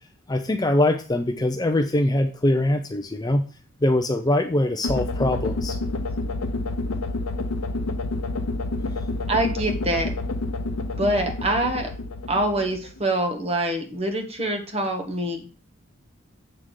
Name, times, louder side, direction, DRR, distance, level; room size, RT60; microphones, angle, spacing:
voice 1, 0.3-3.5 3.8-5.8, left 1 dB, 20° left, 5 dB, 0.5 m, -22 dB
sound 1, 4.8-13.0, left 2 dB, 85° left, 0.7 m, -29 dB
voice 2, 9.3-10.1 11.0-11.9 12.3-15.4, right 1 dB, 30° right, 4 dB, 1.3 m, -25 dB
7.7 x 3.7 x 6.4 m, 0.38 s
head